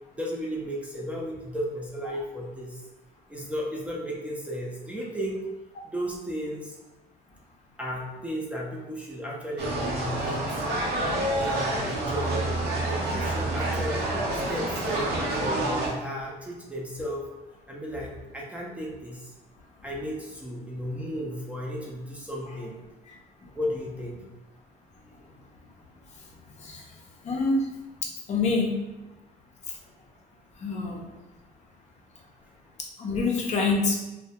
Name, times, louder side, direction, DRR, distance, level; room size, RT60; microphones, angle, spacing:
voice 1, 0.1-2.8 3.3-5.4 5.8-6.8 7.8-10.6 11.4-12.4 12.8-14.2 14.5-17.2 17.7-19.3 19.8-22.8 23.6-24.2, equal, 10° right, -4 dB, 0.5 m, -34 dB
sound 1, 9.6-15.9, right 1 dB, 75° right, 0.7 m, -28 dB
voice 2, 27.2-27.6 28.3-28.7 30.6-31.1 33.0-34.0, left 3 dB, 45° left, -1 dB, 0.5 m, -25 dB
2.2 x 2.1 x 2.8 m, 1.0 s
cardioid pair, 110°, 17 cm